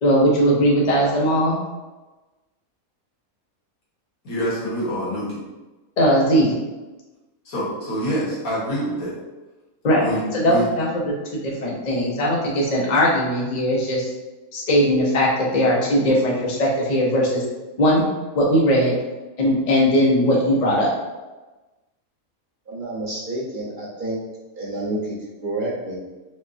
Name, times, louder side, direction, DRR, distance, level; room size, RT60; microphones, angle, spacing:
voice 1, 0.0-1.6 6.0-6.6 9.8-10.0 10.3-14.1 14.5-17.4 17.8-18.1 18.3-18.9 19.4-20.9, equal, 50° left, -4 dB, 0.5 m, -19 dB
voice 2, 4.2-5.4 7.5-9.1 10.0-10.7, equal, 80° left, -6 dB, 1.7 m, -26 dB
voice 3, 22.7-24.2 24.5-26.0, right 1 dB, 40° right, -7 dB, 1.0 m, -29 dB
4.9 x 2.1 x 2.6 m, 1.2 s
omnidirectional pair, 1.5 m